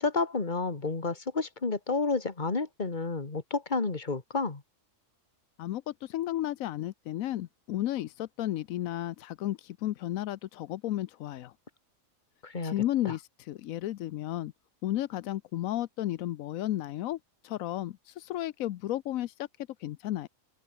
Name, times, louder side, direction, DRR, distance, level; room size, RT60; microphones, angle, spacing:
voice 1, 0.0-4.6 12.4-12.7 13.0-13.1, left 3 dB, 35° left, 2.1 m, -30 dB
voice 2, 5.6-11.5 12.6-14.5 14.8-17.2 17.4-19.5 19.8-20.3, left 14 dB, 90° left, 1.1 m, -33 dB
open air
omnidirectional pair, 1.4 m